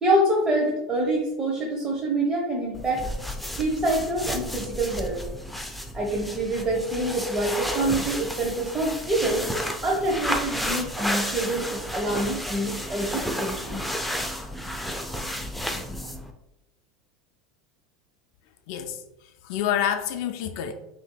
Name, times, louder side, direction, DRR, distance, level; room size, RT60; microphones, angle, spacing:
voice 1, 0.0-3.0 3.5-5.2 5.9-13.8, right 1 dB, 20° right, 0.9 m, -26 dB
sound 1, 2.7-16.3, equal, ahead, 0.5 m, -32 dB
voice 2, 18.7-20.7, left 9 dB, 65° left, 0.4 m, -28 dB
5.5 x 2.7 x 2.2 m
hypercardioid pair, 100°, 3 cm